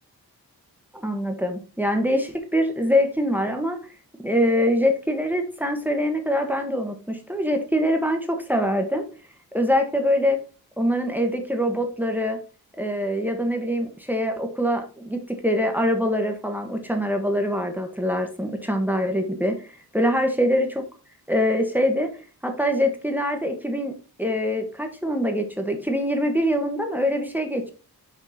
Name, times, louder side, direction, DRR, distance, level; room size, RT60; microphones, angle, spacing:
voice 1, 0.9-3.8 4.2-9.0 9.5-10.4 10.8-12.4 12.8-19.7 19.9-20.7 21.3-22.1 22.4-27.7, equal, 5° right, 4 dB, 1.3 m, -24 dB
6.3 x 5.2 x 4.2 m, 0.35 s
wide cardioid pair, 100°, 38 cm